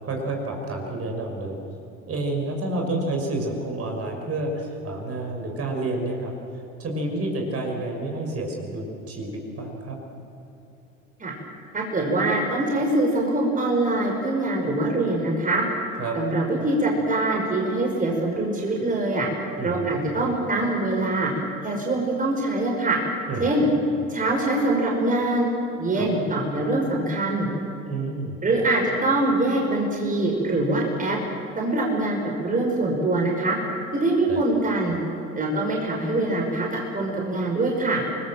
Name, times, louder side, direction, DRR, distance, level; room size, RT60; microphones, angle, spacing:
voice 1, 0.0-1.6 2.1-6.3 6.8-10.0 16.0-16.2 19.6-19.9 23.3-23.6 26.0-26.1 27.8-28.4 34.3-34.4, right 2 dB, 35° right, 1 dB, 5.8 m, -29 dB
voice 2, 11.7-15.6 16.1-19.3 19.6-21.3 21.6-23.0 23.4-23.7 24.1-25.5 25.8-27.5 28.4-31.2 31.6-32.2 32.4-33.6 33.9-35.0 35.4-38.0, right 2 dB, 20° right, 0 dB, 5.4 m, -23 dB
29.5 x 21.0 x 7.7 m, 2.9 s
figure-of-eight pair, 75°, 40 cm